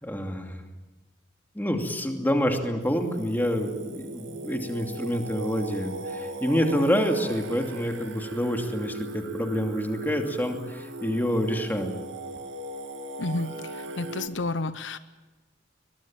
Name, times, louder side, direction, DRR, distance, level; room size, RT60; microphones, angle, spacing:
voice 1, 0.0-0.6 1.5-12.0, equal, 10° left, 4 dB, 2.7 m, -27 dB
Singing, 2.8-14.3, right 1 dB, 80° right, 2.4 m, -38 dB
voice 2, 13.2-15.0, left 2 dB, 80° left, 13 dB, 0.9 m, -31 dB
23.0 x 22.0 x 8.8 m, 1.2 s
head